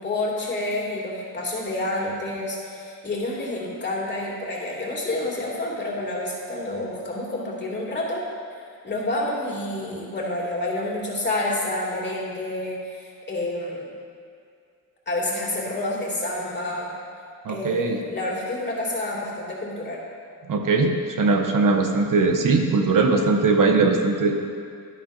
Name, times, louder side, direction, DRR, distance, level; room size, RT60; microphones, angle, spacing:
voice 1, 0.0-8.2 8.8-13.9 15.1-16.9 17.5-20.0, left 2 dB, 30° left, -4 dB, 2.6 m, -29 dB
voice 2, 17.4-18.0 20.5-24.4, right 3 dB, 60° right, 3 dB, 0.9 m, -20 dB
11.5 x 11.0 x 2.6 m, 2.3 s
cardioid pair, 105°, 36 cm